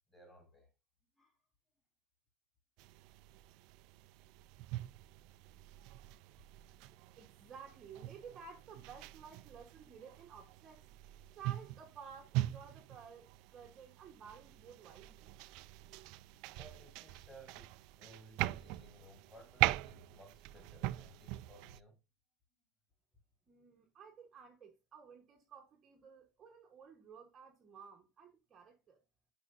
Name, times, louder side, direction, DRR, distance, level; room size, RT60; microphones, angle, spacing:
voice 1, 0.1-0.7 1.2-1.4 6.0-6.2 16.4-22.0, right 1 dB, 10° left, 3.1 m, -59 dB
sound 1, 2.8-21.8, right 17 dB, 50° right, 0.3 m, -42 dB
voice 2, 6.7-10.8 11.3-15.3 23.5-29.0, right 6 dB, 20° right, 1.0 m, -54 dB
10.5 x 4.9 x 2.5 m
cardioid pair, 175°, 0 cm